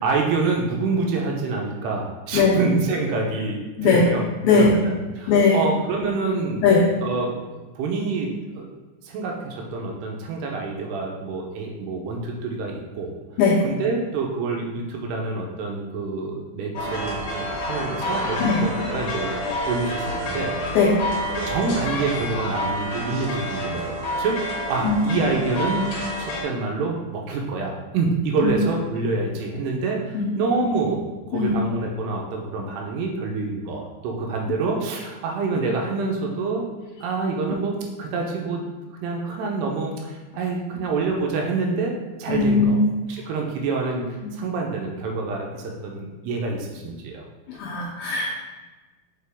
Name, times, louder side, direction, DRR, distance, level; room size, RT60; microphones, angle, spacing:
voice 1, 0.0-4.2 4.5-6.7 7.0-8.7 9.0-13.1 13.6-19.4 19.6-20.8 21.5-25.9 26.2-31.1 31.3-36.7 37.0-38.7 38.9-42.8 43.1-47.2, right 3 dB, 80° right, 0 dB, 2.6 m, -27 dB
voice 2, 5.3-5.6 6.6-6.9 13.4-13.6 18.4-18.6 20.8-21.0 24.8-25.1 28.4-28.5 30.1-30.3 31.3-31.6 42.3-42.9 44.2-44.3 47.5-48.3, left 4 dB, 80° left, -3 dB, 2.2 m, -19 dB
sound 1, 16.7-26.4, left 1 dB, 60° left, 1.9 m, -28 dB
6.7 x 4.7 x 3.5 m, 1.2 s
omnidirectional pair, 5.0 m